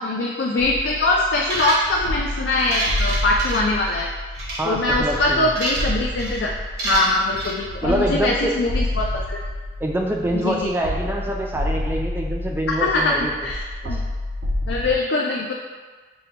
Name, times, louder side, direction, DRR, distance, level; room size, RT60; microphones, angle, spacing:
voice 1, 0.0-4.1 4.6-6.5 6.8-9.4 10.3-10.7 12.7-13.1 13.4-13.6 13.9-14.0 14.7-15.5, left 2 dB, 75° left, -2 dB, 0.4 m, -22 dB
sound 1, 0.6-15.0, left 1 dB, 90° right, 0.4 m, -29 dB
sound 2, 1.4-2.1 2.5-4.0 4.3-4.6 5.1-5.9 6.2-6.4 6.8-7.5, right 2 dB, 65° right, 0.9 m, -28 dB
voice 2, 4.6-5.5 7.8-8.6 9.8-13.3 13.8-14.0, right 1 dB, 10° right, 0 dB, 0.3 m, -25 dB
5.4 x 2.2 x 2.8 m, 1.4 s
head